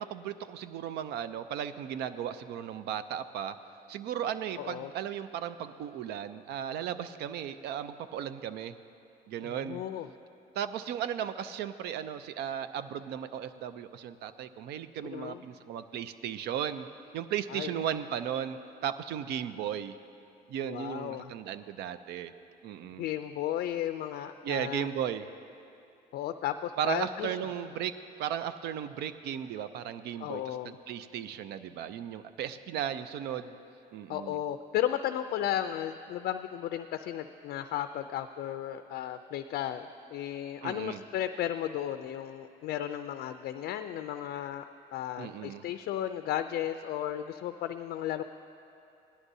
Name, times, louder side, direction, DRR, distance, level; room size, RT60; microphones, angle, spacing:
voice 1, 0.0-3.6 3.9-8.8 9.3-9.8 10.6-16.9 17.1-20.0 20.5-22.3 22.6-23.1 24.4-25.3 26.8-33.6 33.9-34.4 40.6-41.0 45.2-45.6, right 9 dB, 75° right, 12 dB, 0.5 m, -36 dB
voice 2, 4.6-4.9 9.4-10.1 15.1-15.4 17.5-17.7 20.6-21.3 23.0-24.9 26.1-27.4 30.2-30.8 34.1-44.6 44.9-48.2, left 11 dB, 70° left, 8 dB, 0.4 m, -34 dB
17.5 x 11.0 x 2.7 m, 2.6 s
cardioid pair, 110°, 17 cm